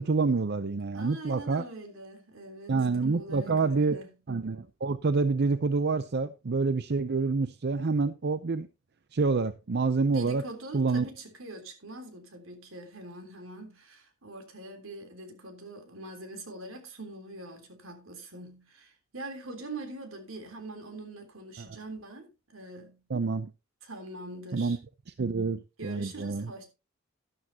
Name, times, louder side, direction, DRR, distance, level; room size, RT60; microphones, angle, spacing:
voice 1, 0.0-1.6 2.7-4.0 4.3-8.7 9.1-10.4 10.7-11.0 21.6-21.7 23.1-23.5 24.5-24.8 25.2-26.5, right 4 dB, 55° right, 0.6 m, -27 dB
voice 2, 0.9-4.1 10.1-23.0 23.8-24.8 25.8-26.7, right 2 dB, 85° right, 3.4 m, -43 dB
12.5 x 12.0 x 2.8 m
head